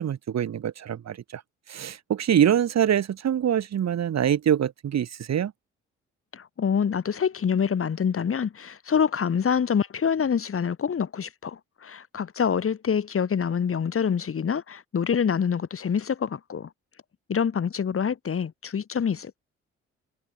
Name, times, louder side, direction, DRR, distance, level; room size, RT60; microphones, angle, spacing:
voice 1, 0.0-1.4 1.7-5.5, right 9 dB, 60° right, 3.5 m, -24 dB
voice 2, 6.3-16.7 17.3-19.4, left 7 dB, 45° left, 2.1 m, -26 dB
supercardioid pair, 55°, 30 cm